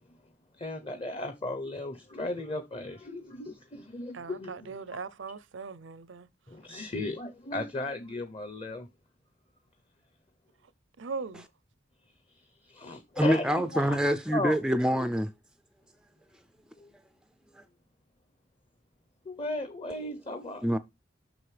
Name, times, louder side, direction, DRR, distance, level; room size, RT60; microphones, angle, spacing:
voice 1, 0.6-4.8 6.5-8.9 12.7-14.6 16.8-16.9 19.3-20.8, left 2 dB, 30° left, 0.8 m, -36 dB
voice 2, 4.1-6.3 11.0-11.4, right 4 dB, 80° right, 0.6 m, -39 dB
voice 3, 13.2-15.3 17.6-17.7 20.6-20.8, equal, 5° right, 0.3 m, -26 dB
7.8 x 6.2 x 3.3 m
head